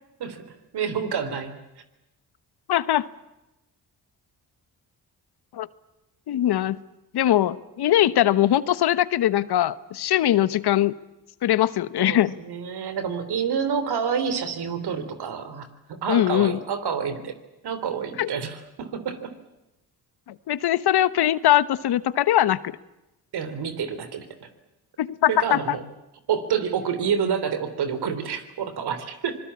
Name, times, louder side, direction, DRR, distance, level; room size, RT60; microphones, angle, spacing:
voice 1, 0.7-1.5 12.0-17.4 17.6-19.3 23.3-24.5 25.3-25.8 26.3-29.4, right 7 dB, 75° right, 11 dB, 3.6 m, -28 dB
voice 2, 2.7-3.1 5.5-5.7 6.3-6.8 7.1-10.9 11.4-12.3 16.1-16.6 18.2-18.3 20.3-22.7 25.0-25.8, left 12 dB, 70° left, 16 dB, 1.1 m, -21 dB
25.5 x 20.5 x 8.6 m, 0.96 s
supercardioid pair, 60°, 40 cm